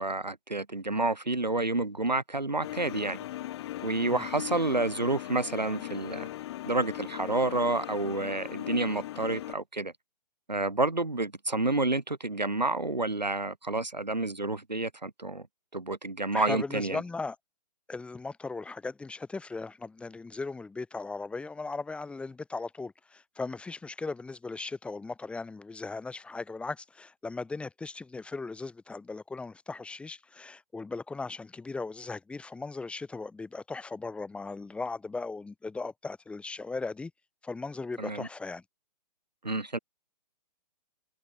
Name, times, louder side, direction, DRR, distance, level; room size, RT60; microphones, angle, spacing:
voice 1, 0.0-3.2 3.8-6.3 6.7-9.9 10.5-15.5 15.7-17.0 38.0-38.3 39.4-39.8, right 2 dB, 85° right, 2.2 m, -29 dB
sound 1, 2.6-9.5, left 14 dB, 40° left, 2.6 m, -39 dB
voice 2, 16.3-17.4 17.9-37.1 37.4-38.6, left 3 dB, 5° left, 1.5 m, -38 dB
figure-of-eight pair, 125°, 21 cm